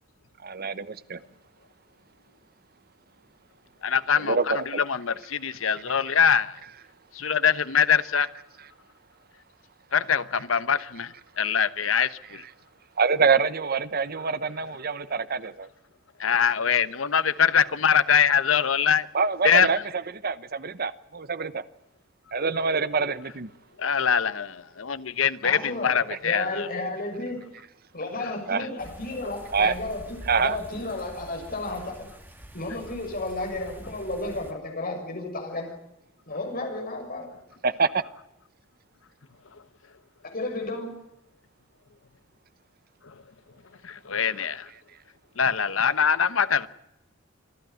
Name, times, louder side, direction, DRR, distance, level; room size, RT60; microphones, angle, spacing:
voice 1, 0.4-1.2 4.2-4.8 13.0-15.7 19.1-19.8 20.2-21.6 22.3-23.5 28.5-28.6 29.5-29.7 30.3-30.6 37.6-38.0, right 5 dB, 50° right, 1.0 m, -25 dB
voice 2, 3.8-6.6 7.1-8.3 9.9-12.4 16.2-19.1 19.4-19.7 23.8-26.7 43.8-44.7 45.4-46.7, left 7 dB, 85° left, 1.0 m, -23 dB
voice 3, 25.4-27.4 27.9-32.1 32.5-35.7 36.3-37.4 40.2-40.9, left 2 dB, 45° left, 6.7 m, -33 dB
sound 1, 28.8-34.5, equal, 10° right, 3.1 m, -46 dB
27.0 x 12.0 x 9.3 m
head